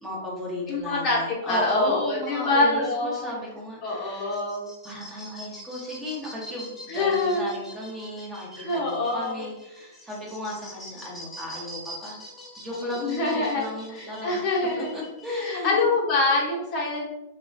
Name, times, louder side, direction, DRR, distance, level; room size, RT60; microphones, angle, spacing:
voice 1, 0.0-4.4 4.8-12.2 12.6-14.4 14.8-15.8, left 1 dB, 15° right, -4 dB, 0.9 m, -34 dB
voice 2, 0.7-3.3 3.8-4.6 6.9-7.5 8.6-9.4 12.8-13.6 13.9-14.9 15.3-17.0, left 2 dB, 35° left, -3 dB, 0.9 m, -25 dB
sound 1, 4.1-15.4, equal, 10° left, 0.7 m, -44 dB
2.9 x 2.2 x 2.6 m, 0.99 s
hypercardioid pair, 105°, 0 cm